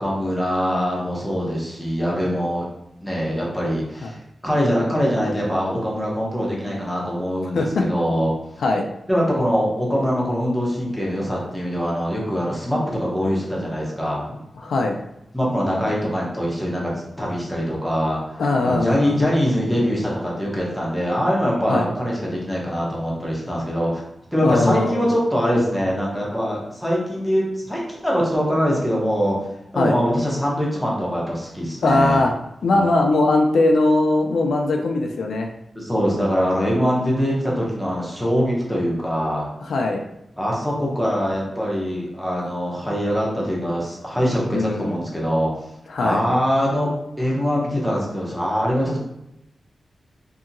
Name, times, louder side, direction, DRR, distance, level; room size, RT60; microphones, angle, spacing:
voice 1, 0.0-2.6 3.0-4.2 4.4-8.3 9.1-14.4 15.3-16.8 17.2-18.2 18.6-24.0 24.3-29.4 29.7-32.2 32.6-32.9 35.8-39.5 40.4-45.5 46.0-46.9 47.2-49.0, equal, 5° left, -4 dB, 0.8 m, -23 dB
voice 2, 7.5-7.9 8.6-8.8 14.6-15.0 18.4-19.2 21.7-21.9 24.4-25.1 29.8-30.0 31.8-32.3 32.6-35.5 39.6-40.1 44.5-45.0 45.9-46.2, left 2 dB, 85° left, 2 dB, 0.3 m, -20 dB
2.7 x 2.7 x 2.6 m, 0.85 s
wide cardioid pair, 145°, 0 cm